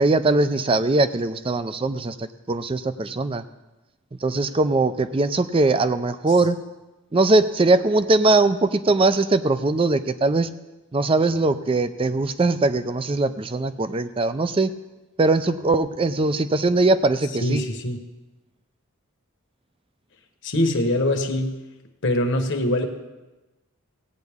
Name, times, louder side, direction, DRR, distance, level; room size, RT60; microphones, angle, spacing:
voice 1, 0.0-3.4 4.2-6.6 7.1-10.5 10.9-14.7 15.2-17.6, right 2 dB, 25° right, 12 dB, 0.4 m, -21 dB
voice 2, 17.4-18.0 20.4-21.6 22.0-22.9, left 1 dB, 60° left, 4 dB, 1.2 m, -23 dB
17.0 x 9.3 x 3.6 m, 1.1 s
head